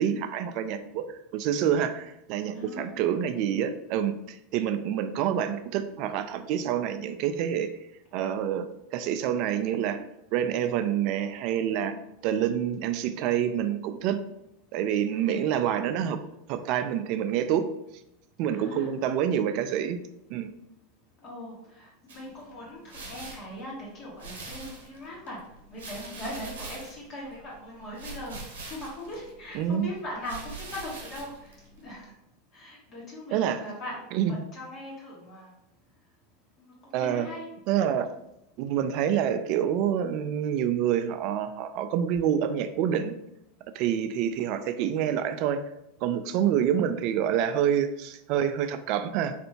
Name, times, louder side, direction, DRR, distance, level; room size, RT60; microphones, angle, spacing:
voice 1, 0.0-7.7 8.1-10.0 10.3-12.0 12.2-14.2 14.7-16.2 16.5-17.6 18.4-20.0 20.3-20.5 29.5-29.9 33.3-33.6 34.1-34.3 36.9-37.3 37.7-38.1 38.6-43.1 43.7-45.6 46.0-49.3, right 9 dB, 55° right, 10 dB, 0.3 m, -27 dB
voice 2, 2.5-2.9 15.1-15.3 18.5-18.9 21.2-25.4 25.7-28.3 28.7-31.5 31.8-32.1 32.5-34.0 34.5-35.5 36.6-37.4, left 1 dB, 40° left, -5 dB, 1.2 m, -40 dB
sound 1, 22.1-32.1, right 3 dB, 80° right, 0.9 m, -44 dB
3.3 x 2.6 x 2.8 m, 0.84 s
hypercardioid pair, 95°, 0 cm